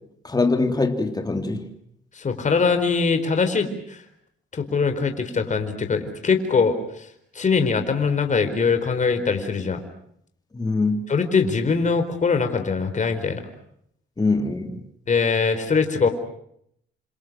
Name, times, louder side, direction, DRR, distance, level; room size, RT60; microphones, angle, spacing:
voice 1, 0.2-1.7 10.5-11.0 14.2-14.8, left 3 dB, 20° left, 5 dB, 3.4 m, -23 dB
voice 2, 2.1-4.0 4.5-7.1 7.3-9.8 11.1-13.4 15.1-16.1, left 5 dB, 40° left, 7 dB, 4.4 m, -22 dB
29.0 x 27.0 x 6.2 m, 0.71 s
cardioid pair, 90°, 20 cm